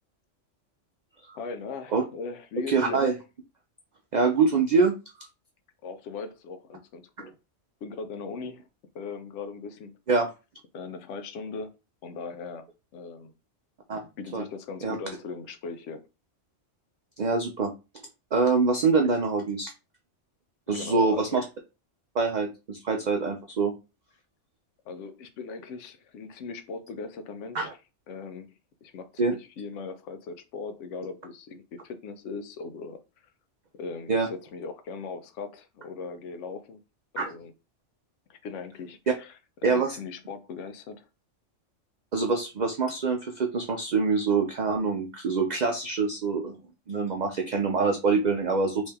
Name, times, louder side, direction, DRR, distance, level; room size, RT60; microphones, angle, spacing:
voice 1, 1.3-3.0 5.8-7.3 7.8-8.7 8.9-10.0 10.7-11.7 12.0-13.3 14.2-16.1 20.7-21.4 24.9-27.8 28.1-28.5 28.8-33.0 33.7-36.8 37.1-37.5 38.3-39.3 39.7-41.0, left 4 dB, 75° left, 0.9 m, -39 dB
voice 2, 2.7-3.1 4.1-4.9 7.2-7.3 10.1-10.3 13.9-14.0 14.3-14.4 14.8-14.9 17.2-17.7 18.3-19.7 20.7-21.4 22.1-23.7 27.5-27.7 29.2-29.3 34.1-34.3 37.2-37.3 39.6-40.0 42.1-46.6 46.9-48.9, right 4 dB, 55° right, 0.5 m, -25 dB
2.9 x 2.7 x 3.4 m
omnidirectional pair, 1.3 m